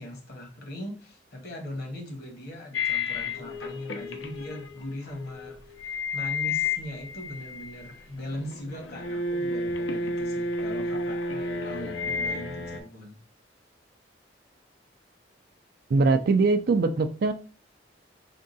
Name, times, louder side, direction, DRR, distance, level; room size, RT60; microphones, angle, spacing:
voice 1, 0.0-13.2, left 1 dB, 60° left, 2 dB, 1.2 m, -40 dB
sound 1, 2.7-8.0 8.3-12.8, left 3 dB, 80° left, 0.6 m, -31 dB
voice 2, 15.9-17.3, right 3 dB, 55° right, 10 dB, 0.4 m, -22 dB
3.6 x 2.3 x 4.0 m, 0.36 s
head